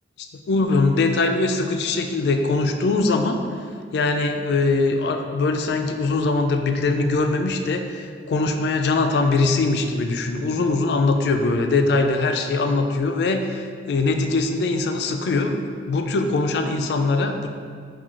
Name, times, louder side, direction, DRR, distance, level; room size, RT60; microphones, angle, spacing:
voice 1, 0.2-3.4 3.9-17.5, left 3 dB, 65° left, 5 dB, 0.3 m, -22 dB
4.5 x 2.3 x 3.6 m, 2.2 s
head